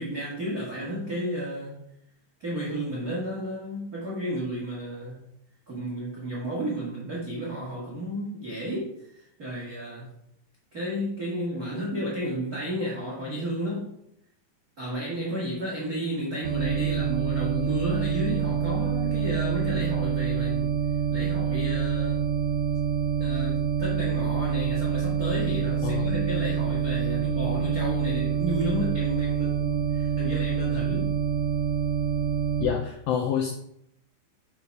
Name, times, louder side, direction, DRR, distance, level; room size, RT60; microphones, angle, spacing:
voice 1, 0.0-1.7 2.4-5.2 5.7-10.1 10.7-13.9 14.8-20.7 21.1-22.2 23.2-31.1, right 1 dB, 40° right, -6 dB, 1.3 m, -32 dB
sound 1, 16.4-32.6, right 7 dB, 90° right, 1.5 m, -26 dB
voice 2, 32.6-33.5, left 8 dB, 85° left, 1 dB, 2.0 m, -27 dB
7.0 x 7.0 x 4.8 m, 0.77 s
omnidirectional pair, 5.1 m